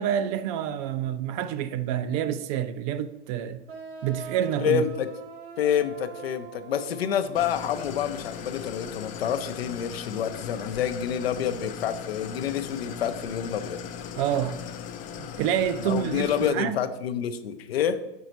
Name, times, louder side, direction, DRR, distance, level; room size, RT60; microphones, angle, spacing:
voice 1, 0.0-3.6 4.0-4.8 14.2-14.6 15.2-16.8, right 9 dB, 35° right, 0.4 m, -28 dB
sound 1, 3.7-9.2, right 5 dB, 85° right, 1.2 m, -44 dB
voice 2, 4.6-5.1 5.6-13.8 15.9-18.0, left 8 dB, 80° left, 0.7 m, -28 dB
Idling, 7.4-16.5, left 8 dB, 25° left, 0.4 m, -38 dB
5.5 x 4.1 x 4.5 m
hypercardioid pair, 120°, 30 cm